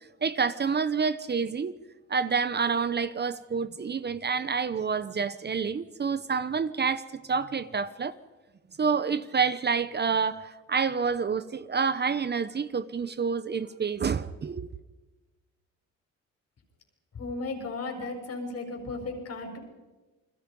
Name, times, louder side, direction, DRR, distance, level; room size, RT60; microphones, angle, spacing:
voice 1, 0.2-1.7 2.1-8.1 8.8-14.7, right 5 dB, 35° right, 1.0 m, -28 dB
voice 2, 17.1-19.6, left 3 dB, 55° left, 6.8 m, -35 dB
29.5 x 21.5 x 5.4 m
cardioid pair, 90°, 30 cm